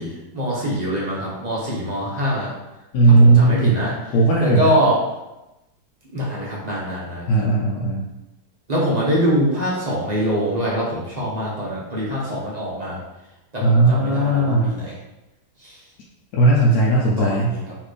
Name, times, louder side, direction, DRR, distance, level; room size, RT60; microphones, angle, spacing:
voice 1, 0.0-2.5 3.1-5.0 6.1-7.3 8.7-13.0 13.5-15.0 15.6-15.8 17.2-17.8, equal, 30° right, -6 dB, 0.8 m, -24 dB
voice 2, 2.9-3.8 4.1-4.7 7.3-8.0 13.6-14.7 16.3-17.6, right 2 dB, 70° left, -4 dB, 1.1 m, -16 dB
4.2 x 3.2 x 3.3 m, 0.98 s
omnidirectional pair, 1.9 m